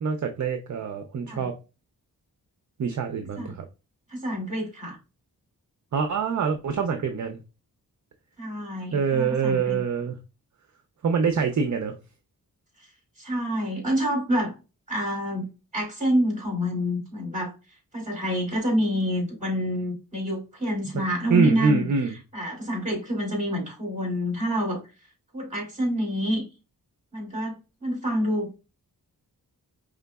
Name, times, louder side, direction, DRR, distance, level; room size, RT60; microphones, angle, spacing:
voice 1, 0.0-1.6 2.8-3.6 5.9-7.4 8.9-10.2 11.0-11.9 20.9-22.2, right 5 dB, 50° right, 0.6 m, -25 dB
voice 2, 4.1-5.0 8.4-9.8 13.2-14.5 14.9-15.5 15.7-17.5 17.9-21.9 22.3-24.8 25.3-26.4 27.1-28.6, equal, 20° right, 2.4 m, -27 dB
5.0 x 3.5 x 2.2 m
wide cardioid pair, 120°, 36 cm